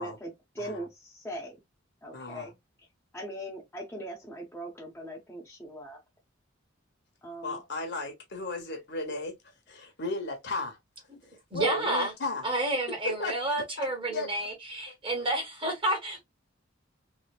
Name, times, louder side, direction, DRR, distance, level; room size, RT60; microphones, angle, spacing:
voice 1, 0.0-1.6 2.0-2.6 3.1-6.0 7.2-7.6, right 1 dB, 10° left, 0.7 m, -40 dB
voice 2, 2.1-2.5 7.4-9.3 9.7-10.8 11.5-12.4 13.2-13.3 13.8-14.3, left 2 dB, 60° left, 1.1 m, -35 dB
voice 3, 11.5-12.1 12.4-16.2, right 1 dB, 25° right, 1.2 m, -30 dB
3.2 x 2.7 x 2.4 m
head